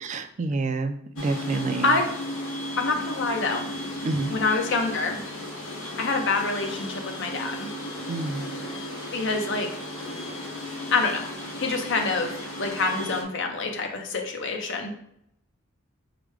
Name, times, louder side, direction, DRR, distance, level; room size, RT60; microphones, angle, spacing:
voice 1, 0.0-1.9 4.0-4.3 8.1-8.5, right 3 dB, 35° right, 7 dB, 0.4 m, -28 dB
sound 1, 1.2-13.2, left 1 dB, 90° left, 0.9 m, -35 dB
voice 2, 2.8-3.7 4.3-5.2 6.0-7.7 9.1-9.7 10.9-11.2 11.6-12.3 12.6-14.9, left 3 dB, 65° left, 3 dB, 0.7 m, -26 dB
4.9 x 2.2 x 4.7 m, 0.75 s
head